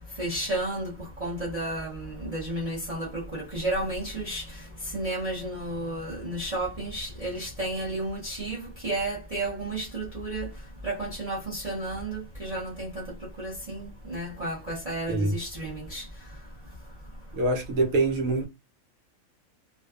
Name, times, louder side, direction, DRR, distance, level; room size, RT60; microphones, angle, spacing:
voice 1, 0.2-10.5 10.8-13.0 13.4-16.0, right 1 dB, 35° right, 0.6 m, -32 dB
voice 2, 17.3-18.5, right 2 dB, 85° right, 1.1 m, -25 dB
2.5 x 2.2 x 2.3 m
omnidirectional pair, 1.4 m